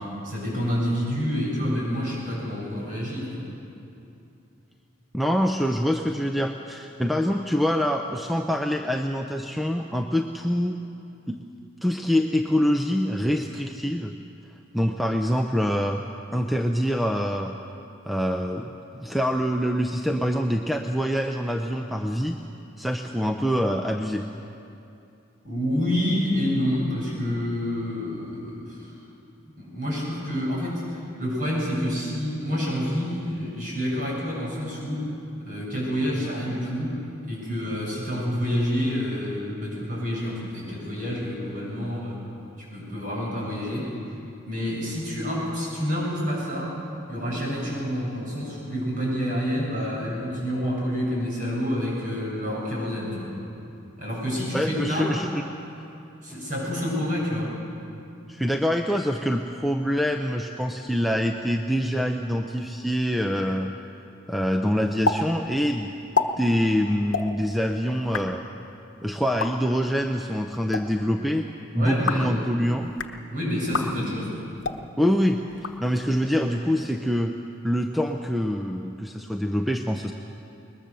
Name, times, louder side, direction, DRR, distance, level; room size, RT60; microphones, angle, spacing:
voice 1, 0.0-3.5 25.4-28.9 29.6-35.1 35.4-42.2 42.6-44.0 44.5-46.8 47.1-53.3 54.0-55.1 56.2-57.5 71.7-72.4 73.3-74.4, equal, 40° right, -4 dB, 7.1 m, -28 dB
voice 2, 5.1-10.8 11.3-11.4 11.8-14.1 14.7-16.0 16.3-17.6 18.1-18.7 19.0-22.4 22.8-24.2 54.5-55.4 58.3-63.7 64.3-65.9 66.4-68.4 69.0-71.5 71.7-72.9 75.0-75.4 75.8-77.3 77.6-80.1, equal, ahead, 3 dB, 0.6 m, -25 dB
sound 1, 65.0-65.2 65.5-65.6 66.0-66.3 67.1-67.3 67.9-68.2 69.2-69.5 70.5-70.8 71.9-72.3 72.8-73.1 73.7-73.9 74.6-74.8 75.5-76.2, left 4 dB, 65° left, 1.1 m, -28 dB
21.5 x 21.0 x 6.8 m, 2.7 s
head